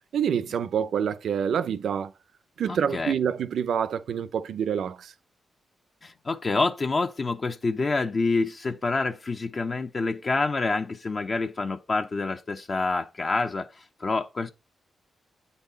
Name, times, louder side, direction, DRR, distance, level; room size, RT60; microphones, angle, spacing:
voice 1, 0.1-2.1 2.6-5.1, right 8 dB, 80° right, 0.7 m, -27 dB
voice 2, 2.7-3.1 6.0-13.7 14.0-14.5, left 3 dB, 45° left, 0.7 m, -27 dB
8.1 x 4.2 x 5.3 m
cardioid pair, 75°, 0 cm